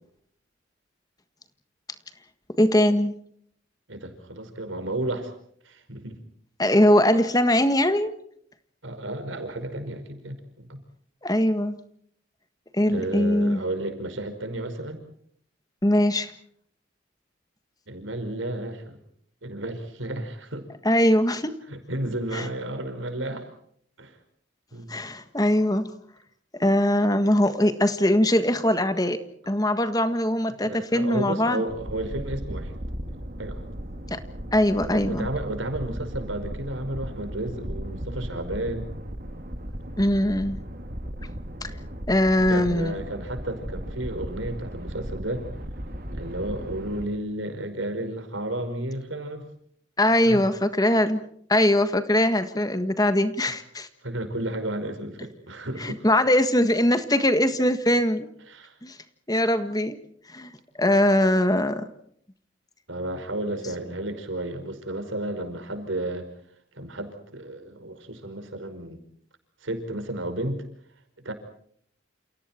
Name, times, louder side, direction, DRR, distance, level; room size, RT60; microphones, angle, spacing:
voice 1, 2.6-3.1 6.6-8.1 11.2-11.8 12.7-13.6 15.8-16.3 20.8-21.5 22.3-22.5 24.9-25.9 26.6-29.2 29.5-31.6 34.1-34.2 34.5-35.3 40.0-40.6 41.6-41.7 42.1-43.0 50.0-51.2 51.5-53.9 55.8-58.3 58.8-59.0 59.3-60.0 60.3-60.5 60.8-61.9, left 1 dB, 20° left, 10 dB, 1.5 m, -21 dB
voice 2, 3.9-5.3 5.6-6.2 8.8-10.8 12.9-15.0 17.9-19.0 19.4-20.7 21.7-23.5 24.0-24.2 24.7-24.9 30.6-32.7 33.4-33.6 34.9-38.9 42.5-45.5 46.1-49.5 50.3-50.4 54.0-56.1 58.5-58.8 62.9-66.3 66.7-69.0 69.6-70.6 71.2-71.3, right 1 dB, 90° right, 7 dB, 5.3 m, -32 dB
sound 1, 31.7-47.1, equal, 50° right, 2.5 m, -36 dB
29.0 x 29.0 x 4.4 m, 0.66 s
head